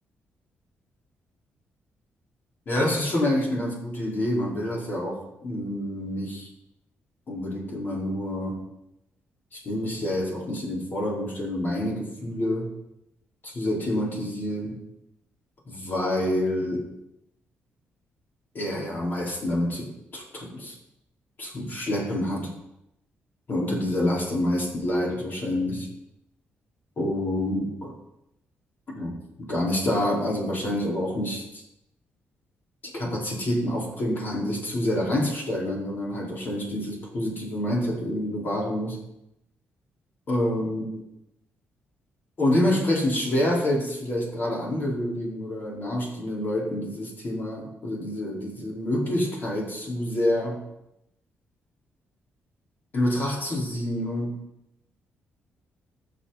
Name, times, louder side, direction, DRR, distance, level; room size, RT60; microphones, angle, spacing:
voice 1, 2.7-6.5 7.3-8.6 9.5-12.7 13.4-14.8 15.7-16.9 18.5-20.7 21.4-22.5 23.5-25.9 27.0-27.9 28.9-31.6 32.9-39.0 40.3-41.0 42.4-50.6 52.9-54.4, left 1 dB, 50° left, -3 dB, 4.8 m, -27 dB
20.5 x 7.2 x 4.3 m, 0.84 s
cardioid pair, 100°, 4 cm